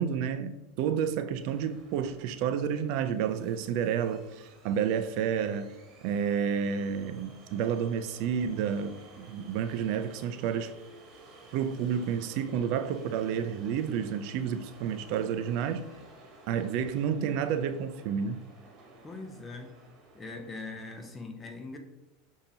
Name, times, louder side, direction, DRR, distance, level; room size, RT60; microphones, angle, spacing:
voice 1, 0.0-5.7 6.0-10.7 11.5-15.9 16.5-18.4, right 8 dB, 60° right, 0.3 m, -30 dB
sound 1, 1.3-21.2, right 2 dB, 40° right, 1.3 m, -54 dB
voice 2, 19.0-19.8 20.1-21.8, left 3 dB, 20° left, 0.8 m, -41 dB
6.6 x 2.7 x 2.8 m
hypercardioid pair, 100°, 0 cm